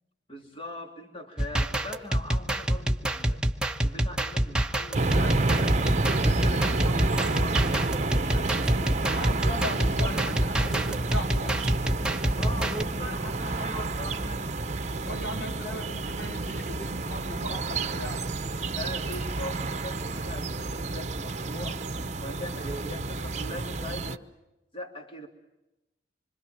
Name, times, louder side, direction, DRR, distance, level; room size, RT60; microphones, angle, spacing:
voice 1, 0.3-3.4 3.8-5.8 6.2-9.3 9.8-10.9 12.4-14.6 15.1-16.0 18.7-21.8 22.2-24.2 24.7-25.3, left 1 dB, 30° left, 3 dB, 2.8 m, -41 dB
sound 1, 1.4-12.8, right 1 dB, 5° right, 1.1 m, -27 dB
sound 2, 4.9-24.2, right 3 dB, 40° right, 1.0 m, -30 dB
voice 2, 9.1-11.7 15.0-18.3 22.2-22.4, equal, 80° left, 3 dB, 3.8 m, -38 dB
26.5 x 25.0 x 7.6 m, 0.96 s
head